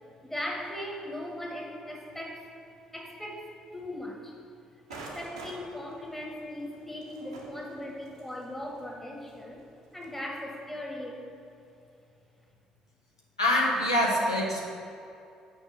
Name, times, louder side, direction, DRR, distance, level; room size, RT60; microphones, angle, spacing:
voice 1, 0.2-2.5 2.9-3.5 3.7-4.4 4.9-9.6 9.9-11.2, left 1 dB, 10° left, -1 dB, 1.8 m, -38 dB
sound 1, 4.9-10.2, right 2 dB, 85° right, 0.9 m, -48 dB
voice 2, 13.4-14.7, left 1 dB, 90° left, -2 dB, 0.7 m, -25 dB
6.3 x 5.2 x 6.4 m, 2.6 s
figure-of-eight pair, 50°, 3 cm